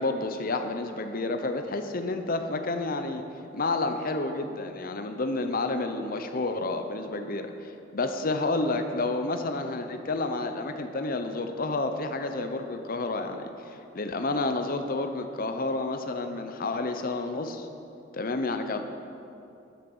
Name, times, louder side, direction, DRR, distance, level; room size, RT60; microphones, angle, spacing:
voice 1, 0.0-3.2 3.5-17.7 18.1-18.9, left 2 dB, 45° left, 7 dB, 0.8 m, -30 dB
13.0 x 10.0 x 5.5 m, 2.7 s
head